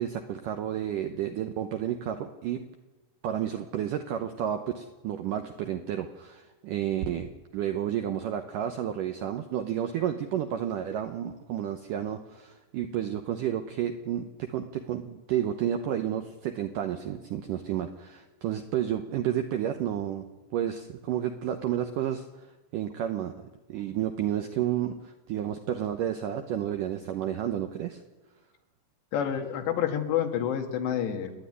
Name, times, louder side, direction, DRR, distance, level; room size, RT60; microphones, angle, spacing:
voice 1, 0.0-2.7 3.2-20.3 20.5-22.3 22.7-28.0, right 10 dB, 85° right, 7 dB, 1.9 m, -31 dB
voice 2, 29.1-31.3, left 9 dB, 80° left, 5 dB, 3.9 m, -28 dB
29.0 x 10.5 x 9.9 m, 1.2 s
omnidirectional pair, 5.0 m